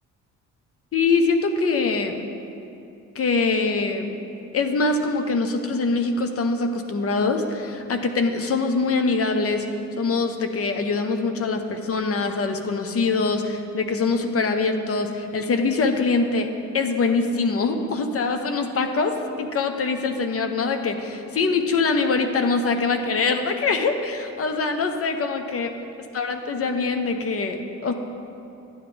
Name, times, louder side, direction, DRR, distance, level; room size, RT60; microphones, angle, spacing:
voice 1, 0.9-2.2 3.1-4.2 4.5-9.7 10.0-25.7 26.1-27.9, left 4 dB, 50° left, 6 dB, 0.9 m, -23 dB
12.0 x 9.1 x 3.5 m, 2.6 s
cardioid pair, 90°, 30 cm